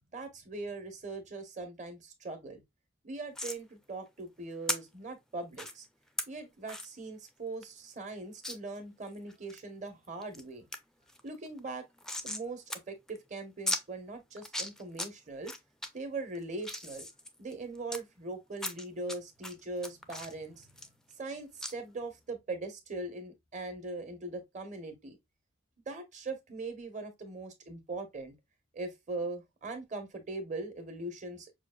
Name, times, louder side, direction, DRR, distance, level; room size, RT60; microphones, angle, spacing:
voice 1, 0.1-2.6 3.0-5.9 6.3-10.7 11.2-11.8 12.2-15.5 15.9-17.0 17.4-20.9 21.2-25.2 25.9-28.3 28.7-31.5, right 2 dB, 40° right, 1.0 m, -41 dB
sound 1, 3.3-3.6 4.7-4.8 5.5-5.7 6.2-6.3 6.7-6.9 7.3-7.4 7.6-7.7 8.4-8.6 9.1-9.6 10.0-10.4 10.7-10.8 11.1-12.4 12.7-12.8 13.1-13.2 13.7-13.8 14.4-15.1 15.4-15.9 16.3-18.0 18.6-19.2 19.4-21.3 21.6-21.7, left 1 dB, 5° left, 0.4 m, -36 dB
5.9 x 2.4 x 2.3 m
head